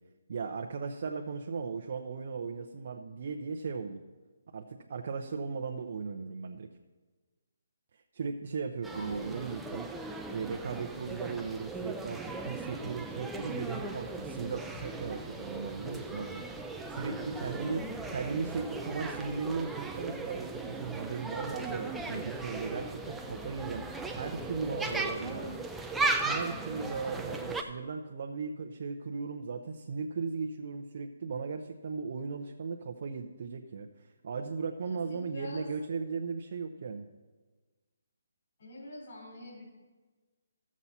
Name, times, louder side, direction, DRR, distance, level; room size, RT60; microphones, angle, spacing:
voice 1, 0.3-4.0 4.5-6.7 8.1-9.9 10.3-23.8 24.2-25.5 26.2-37.1, right 5 dB, 55° right, 4 dB, 0.7 m, -37 dB
sound 1, 8.8-27.6, right 3 dB, 5° right, 0.5 m, -37 dB
voice 2, 8.9-9.4 16.3-16.5 24.8-25.6 34.8-35.7 38.6-39.7, left 1 dB, 55° left, -6 dB, 3.6 m, -45 dB
13.0 x 7.3 x 4.2 m, 1.3 s
hypercardioid pair, 155°, 0 cm